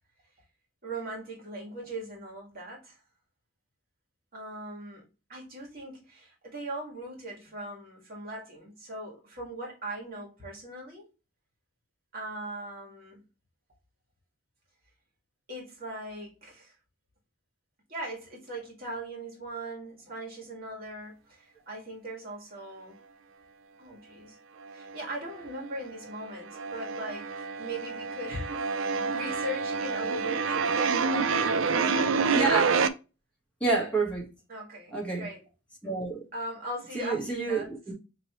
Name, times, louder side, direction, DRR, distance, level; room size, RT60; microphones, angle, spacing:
voice 1, 0.8-3.0 4.3-5.0 5.3-11.1 12.1-13.2 15.5-16.7 17.9-23.0 23.8-24.4 24.7-32.1 34.5-35.4 36.3-37.7, right 1 dB, 45° right, 1.9 m, -39 dB
sound 1, 24.6-25.4 25.7-32.9, right 5 dB, 65° right, 0.4 m, -28 dB
voice 2, 32.3-32.7 33.6-34.3 34.9-35.3 35.8-36.2 36.9-37.9, right 3 dB, 5° left, 1.5 m, -28 dB
5.1 x 3.1 x 3.0 m
head